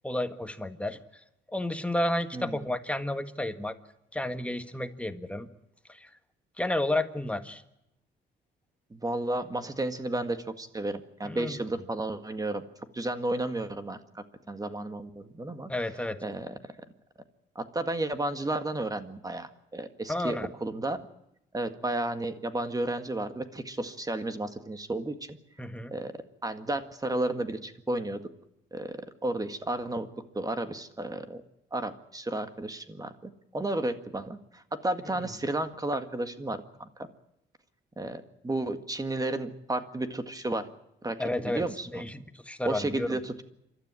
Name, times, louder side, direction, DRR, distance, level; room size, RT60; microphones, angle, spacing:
voice 1, 0.0-1.0 1.5-3.7 4.1-5.5 5.9-6.1 6.6-7.6 11.2-11.6 15.7-16.2 20.1-20.5 25.6-25.9 41.2-41.6 41.9-43.2, left 1 dB, 5° left, 8 dB, 1.6 m, -31 dB
voice 2, 2.3-2.7 8.9-12.6 12.9-15.7 16.2-16.6 17.6-21.0 21.5-25.4 25.9-26.1 26.4-28.2 28.7-30.1 30.3-31.4 31.7-37.1 38.0-40.7 41.0-41.2 41.4-42.0 42.7-43.4, right 2 dB, 20° right, 9 dB, 1.8 m, -32 dB
28.0 x 13.0 x 9.8 m, 0.84 s
cardioid pair, 90°, 20 cm